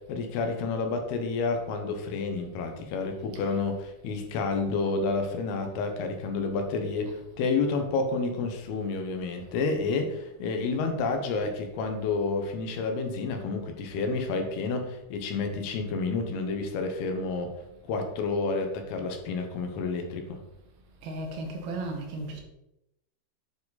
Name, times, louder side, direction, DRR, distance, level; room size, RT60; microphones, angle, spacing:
voice 1, 0.0-17.5 17.9-20.4, left 4 dB, 85° left, 3.0 m, -30 dB
voice 2, 21.0-22.4, right 2 dB, 75° right, 3.1 m, -35 dB
9.2 x 4.7 x 4.1 m
omnidirectional pair, 4.5 m